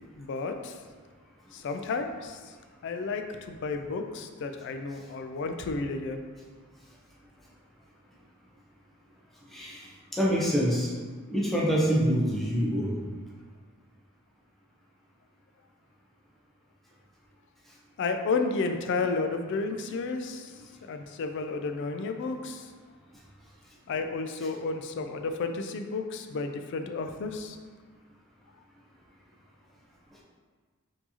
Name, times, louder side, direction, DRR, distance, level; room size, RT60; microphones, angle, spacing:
voice 1, 0.2-0.8 1.5-2.4 2.8-6.2 18.0-20.5 20.8-22.7 23.9-27.6, left 4 dB, 55° left, 6 dB, 0.3 m, -32 dB
voice 2, 9.5-10.9 11.3-13.0, equal, ahead, -6 dB, 0.5 m, -26 dB
4.5 x 2.8 x 2.8 m, 1.5 s
head